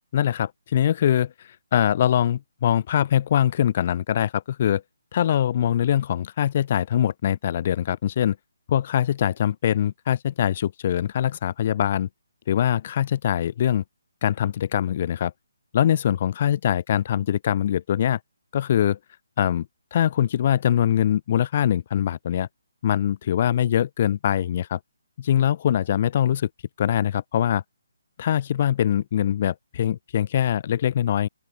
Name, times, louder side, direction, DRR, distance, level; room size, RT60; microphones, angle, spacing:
voice 1, 0.1-1.3 1.7-4.8 5.1-8.4 8.7-12.1 12.5-13.8 14.2-15.3 15.7-18.2 18.5-19.0 19.4-19.7 19.9-22.5 22.8-24.8 25.2-26.5 26.8-27.6 28.2-31.3, left 10 dB, 35° left, 0.7 m, -23 dB
open air
figure-of-eight pair, 140°, 0 cm